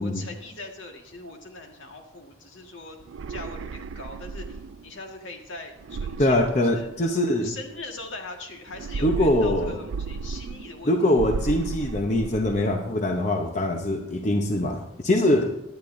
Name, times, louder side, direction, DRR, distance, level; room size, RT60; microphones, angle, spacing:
voice 1, 0.0-3.0 3.3-6.9 7.4-11.0, left 3 dB, 70° left, 2 dB, 1.7 m, -41 dB
sound 1, 3.0-4.9 5.8-7.3 8.7-10.8 11.1-12.8, right 4 dB, 75° right, 0.4 m, -34 dB
voice 2, 6.2-7.5 9.0-9.7 10.9-15.5, left 1 dB, 35° left, 3 dB, 0.7 m, -23 dB
17.0 x 11.0 x 2.6 m, 0.85 s
head